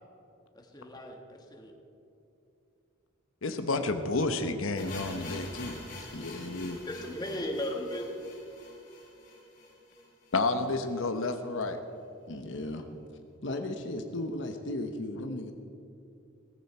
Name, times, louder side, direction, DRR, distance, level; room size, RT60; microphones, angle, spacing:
voice 1, 0.5-1.7 6.8-8.0, left 1 dB, 20° left, 2 dB, 1.6 m, -36 dB
voice 2, 3.4-5.8 10.3-11.8, left 3 dB, 85° left, 7 dB, 1.0 m, -30 dB
sound 1, 4.8-10.7 10.9-11.0 11.3-11.4 12.0-12.1, left 2 dB, 40° left, 4.0 m, -46 dB
voice 3, 6.1-6.8 12.3-12.9 13.4-15.5, left 1 dB, 60° left, 5 dB, 1.0 m, -36 dB
18.0 x 15.0 x 4.4 m, 2.7 s
head